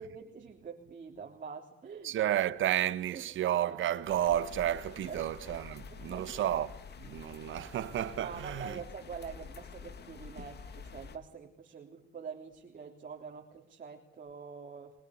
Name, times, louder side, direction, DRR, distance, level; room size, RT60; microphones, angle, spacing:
voice 1, 0.0-2.1 3.1-3.2 5.0-5.2 5.9-6.4 7.1-7.2 8.2-15.0, right 6 dB, 45° right, 3.4 m, -45 dB
voice 2, 2.0-6.7 7.0-8.8, right 11 dB, 75° right, 1.6 m, -31 dB
sound 1, 4.0-11.2, left 6 dB, 55° left, 3.0 m, -48 dB
27.5 x 21.5 x 8.3 m
cardioid pair, 90°, 20 cm